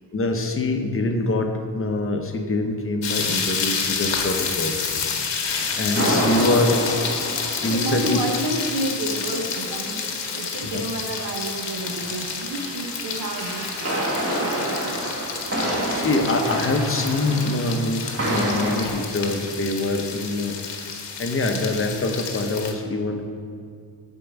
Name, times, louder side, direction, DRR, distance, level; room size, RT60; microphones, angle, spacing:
voice 1, 0.1-4.7 5.7-6.8 7.6-8.2 10.6-10.8 15.9-20.6 21.2-23.3, left 2 dB, 30° left, 4 dB, 0.7 m, -24 dB
sound 1, 3.0-22.7, left 5 dB, 85° left, 1.2 m, -29 dB
sound 2, 5.5-10.9 11.1-18.9, right 1 dB, 35° right, 1.7 m, -29 dB
voice 2, 7.6-13.9 14.2-15.0, right 1 dB, 55° right, 3 dB, 0.9 m, -30 dB
8.8 x 4.5 x 7.0 m, 2.4 s
wide cardioid pair, 145°, 42 cm